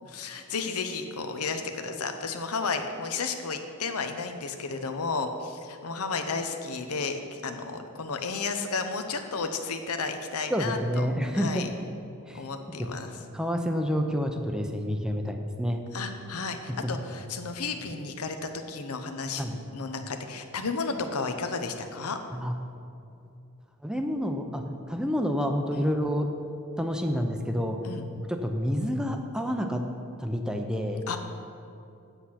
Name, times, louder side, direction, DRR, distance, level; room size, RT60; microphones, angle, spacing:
voice 1, 0.0-11.1 11.3-11.7 12.3-13.2 15.9-18.4 18.7-22.2 25.7-25.9 27.8-28.0 31.1-31.2, left 4 dB, 85° left, 6 dB, 0.8 m, -33 dB
voice 2, 10.5-11.7 12.3-12.4 13.3-15.8 16.8-16.9 19.4-19.6 22.3-22.5 23.8-26.3 26.8-27.8 28.3-29.8 30.2-31.0, equal, 5° right, 4 dB, 0.6 m, -28 dB
8.2 x 8.0 x 5.8 m, 2.6 s
head